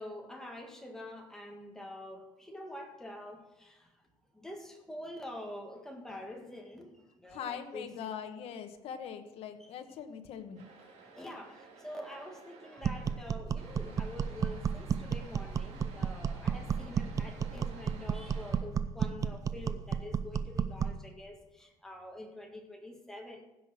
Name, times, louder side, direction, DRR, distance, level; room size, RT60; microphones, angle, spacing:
voice 1, 0.0-4.0 4.3-8.1 9.6-9.7 11.1-23.4, left 1 dB, 5° left, 1 dB, 1.8 m, -46 dB
voice 2, 7.3-10.7 13.8-13.9, left 8 dB, 60° left, 6 dB, 1.3 m, -42 dB
sound 1, 10.6-13.2 13.6-18.6, right 4 dB, 75° right, 3.1 m, -54 dB
sound 2, 12.8-21.0, right 7 dB, 30° right, 0.5 m, -33 dB
15.5 x 6.0 x 6.3 m, 1.1 s
cardioid pair, 160°, 11 cm